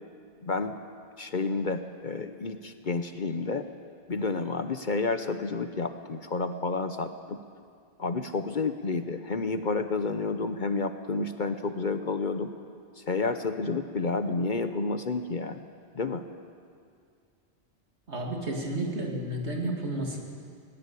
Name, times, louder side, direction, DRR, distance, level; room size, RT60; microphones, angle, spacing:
voice 1, 0.4-0.8 1.2-3.6 4.1-7.4 8.0-12.5 13.0-15.7 15.9-16.2, left 3 dB, 50° left, 9 dB, 1.0 m, -30 dB
voice 2, 18.1-20.2, right 1 dB, 90° right, 0 dB, 2.7 m, -31 dB
21.0 x 19.0 x 8.3 m, 2.2 s
omnidirectional pair, 1.1 m